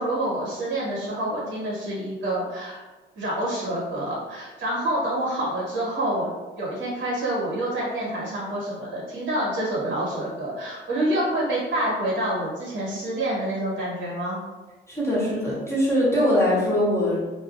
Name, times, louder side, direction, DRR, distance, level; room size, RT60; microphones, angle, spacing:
voice 1, 0.0-2.8 3.1-6.3 6.6-14.4, right 1 dB, 65° right, -5 dB, 1.3 m, -27 dB
voice 2, 14.9-17.2, left 1 dB, 15° left, -7 dB, 0.8 m, -22 dB
2.3 x 2.3 x 2.5 m, 1.2 s
cardioid pair, 90°, 20 cm